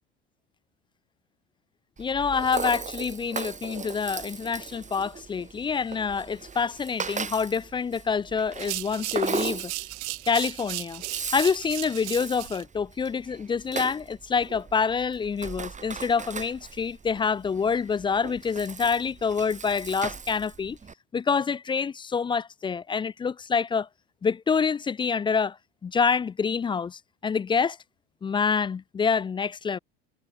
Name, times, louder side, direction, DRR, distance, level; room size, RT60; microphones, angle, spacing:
voice 1, 2.0-9.7 10.3-11.0 11.3-20.8 21.1-23.9 24.2-25.6 25.8-27.8 28.2-29.8, left 6 dB, 15° left, 0.3 m, -27 dB
Rattle (instrument), 2.0-20.9, right 5 dB, 20° right, 1.6 m, -38 dB
sound 1, 8.5-12.6, right 23 dB, 70° right, 0.9 m, -36 dB
hypercardioid pair, 75°, 35 cm